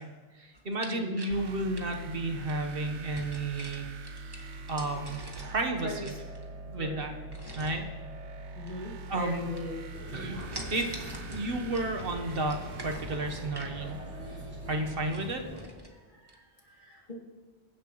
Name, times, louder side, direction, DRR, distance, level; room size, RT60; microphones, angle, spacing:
voice 1, 0.0-4.4 4.7-6.1 6.7-7.1 7.6-7.8 9.1-9.5 10.1-10.4 10.7-11.0 11.3-14.0 14.3-14.4 14.7-15.4, right 2 dB, 55° right, 4 dB, 1.3 m, -32 dB
sound 1, 0.5-2.6 3.1-5.6 5.9-6.7 7.3-7.9 8.6-9.3 9.6-10.0 10.3-13.8 14.3-14.4 14.7-14.8 15.0-15.9 16.3-16.4, right 1 dB, 20° right, 1.4 m, -45 dB
voice 2, 0.9-1.2 5.8-6.1 6.8-7.2 8.5-9.8 16.2-16.4 16.7-17.1, left 1 dB, 45° left, -2 dB, 2.5 m, -39 dB
sound 2, 1.3-15.0, right 2 dB, 85° right, 1.1 m, -43 dB
sound 3, 9.9-15.7, equal, 10° left, 3.0 m, -46 dB
23.0 x 10.0 x 3.1 m, 1.5 s
omnidirectional pair, 1.1 m